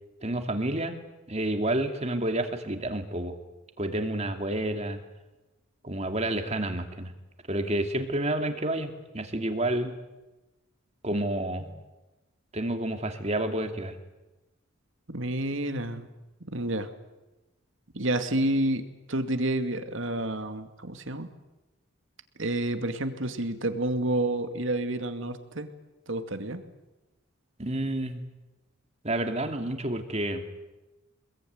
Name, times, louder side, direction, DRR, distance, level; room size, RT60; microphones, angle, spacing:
voice 1, 0.2-1.0 1.3-3.3 3.8-5.0 5.8-7.1 7.5-9.9 11.0-11.6 12.5-13.9 27.6-28.2 29.0-30.4, right 1 dB, 30° right, 6 dB, 2.5 m, -29 dB
voice 2, 15.1-16.1 16.5-16.9 17.9-18.8 19.1-21.3 22.4-25.7 26.1-26.6, right 1 dB, 60° right, 8 dB, 2.3 m, -29 dB
26.5 x 22.0 x 9.5 m, 1.0 s
head